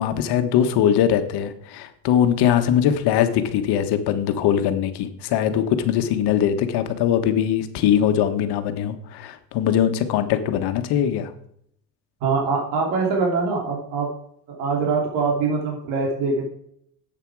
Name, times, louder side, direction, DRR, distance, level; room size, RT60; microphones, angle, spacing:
voice 1, 0.0-11.3, left 9 dB, 65° left, 8 dB, 1.5 m, -21 dB
voice 2, 12.2-14.1 14.5-16.5, right 4 dB, 75° right, 0 dB, 3.1 m, -23 dB
11.0 x 8.3 x 4.8 m, 0.69 s
cardioid pair, 175°, 42 cm